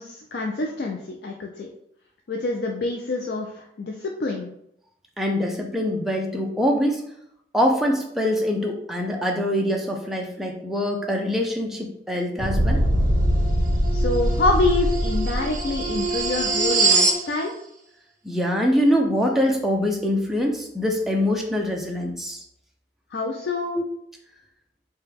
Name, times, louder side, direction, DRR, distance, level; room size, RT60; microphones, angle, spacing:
voice 1, 0.0-1.7 2.3-4.5 13.9-17.5 23.1-23.8, left 2 dB, 65° left, 1 dB, 0.4 m, -26 dB
voice 2, 5.2-7.0 7.5-12.8 18.2-22.4 23.7-23.8, equal, ahead, 0 dB, 0.4 m, -24 dB
sound 1, 12.4-17.2, right 1 dB, 45° right, 0.7 m, -21 dB
4.8 x 2.2 x 3.4 m, 0.74 s
head